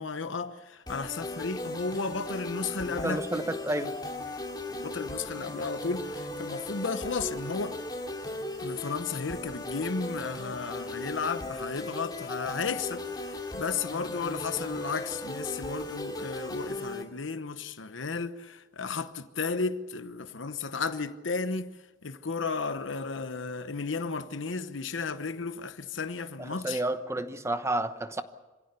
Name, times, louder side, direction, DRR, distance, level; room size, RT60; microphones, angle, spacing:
voice 1, 0.0-3.9 4.7-7.8 8.6-26.8, left 4 dB, 70° left, 1.0 m, -34 dB
sound 1, 0.9-17.0, left 1 dB, 20° left, 2.6 m, -37 dB
voice 2, 2.8-3.9 26.6-28.2, right 1 dB, 15° right, 1.0 m, -30 dB
26.0 x 16.5 x 8.3 m
head